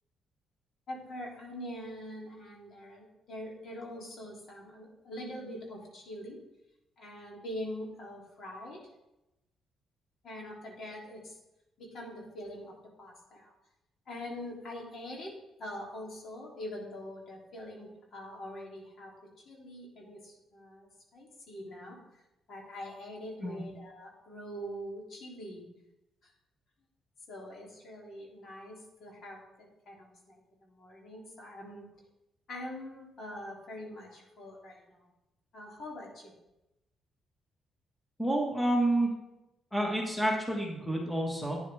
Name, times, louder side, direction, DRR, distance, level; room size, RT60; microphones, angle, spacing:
voice 1, 0.9-6.4 7.0-8.8 10.2-11.4 11.8-13.5 14.1-15.3 15.6-19.1 19.5-22.0 22.5-25.7 26.2-26.3 27.3-31.8 32.5-35.1 35.5-36.3, left 1 dB, 60° left, -2 dB, 3.4 m, -44 dB
voice 2, 38.2-39.1 39.7-41.6, right 1 dB, 5° left, -1 dB, 2.1 m, -29 dB
11.0 x 9.7 x 3.6 m, 0.92 s
cardioid pair, 90°, 0 cm